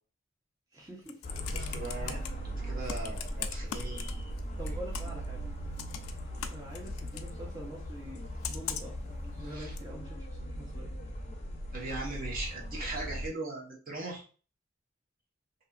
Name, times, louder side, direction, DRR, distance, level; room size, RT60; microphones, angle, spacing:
voice 1, 0.7-1.2 4.6-5.5 6.5-9.0 9.4-10.9, right 1 dB, 15° right, -5 dB, 0.6 m, -45 dB
Computer keyboard, 0.9-2.3 2.9-4.4 4.7-5.3 5.8-7.3 8.4-9.0 9.8-9.9, left 9 dB, 80° left, 0.3 m, -39 dB
sound 1, 1.2-13.3, equal, 35° left, 0.6 m, -38 dB
voice 2, 1.5-4.3 9.4-9.7 11.7-14.2, right 2 dB, 45° right, -2 dB, 0.9 m, -40 dB
2.8 x 2.4 x 2.3 m, 0.37 s
head